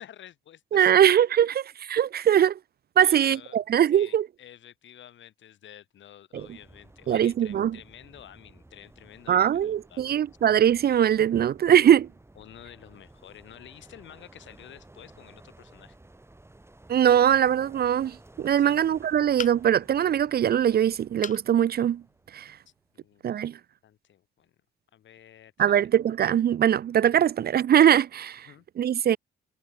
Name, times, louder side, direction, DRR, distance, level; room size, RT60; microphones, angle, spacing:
voice 1, 0.0-0.9 2.3-2.4 3.0-3.6 3.9-10.2 12.3-16.0 18.6-18.8 22.6-23.2 23.8-24.5 24.9-25.7 28.5-28.6, left 11 dB, 70° left, 6.9 m, -50 dB
voice 2, 0.7-2.5 3.0-4.3 6.3-6.5 7.1-7.8 9.3-12.1 16.9-22.0 22.3-22.6 23.2-23.6 25.6-28.5 28.8-29.2, right 10 dB, 50° right, 0.7 m, -21 dB
sound 1, 6.4-22.9, right 2 dB, 10° right, 5.9 m, -54 dB
sound 2, 19.4-19.9 21.2-21.5 22.0-22.1 22.5-22.6, left 7 dB, 40° left, 0.8 m, -37 dB
cardioid pair, 90°, 20 cm